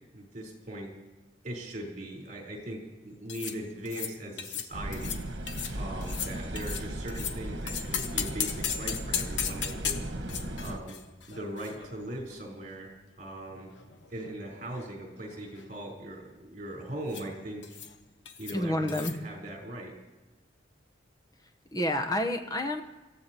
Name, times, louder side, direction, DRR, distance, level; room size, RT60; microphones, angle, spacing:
voice 1, 0.1-0.9 1.4-5.2 5.7-10.0 10.6-10.9 11.3-12.9 13.2-13.7 14.1-17.6 18.4-19.9, right 1 dB, 45° right, -1 dB, 4.1 m, -39 dB
sound 1, 3.3-3.6 3.9-4.1 4.4-4.7 4.9-5.2 5.5-5.8 6.0-7.4 7.7-12.4 12.6-12.7 13.5-14.4 14.7-14.9 15.2-15.6 17.1-17.3 17.6-18.0 18.3-18.6 18.9-19.2, left 8 dB, 75° left, 1.0 m, -36 dB
sound 2, 4.7-10.8, right 1 dB, 70° right, 1.4 m, -36 dB
voice 2, 18.5-19.1 21.7-22.8, left 1 dB, 20° left, 5 dB, 0.9 m, -29 dB
25.5 x 14.5 x 3.0 m, 1.2 s
head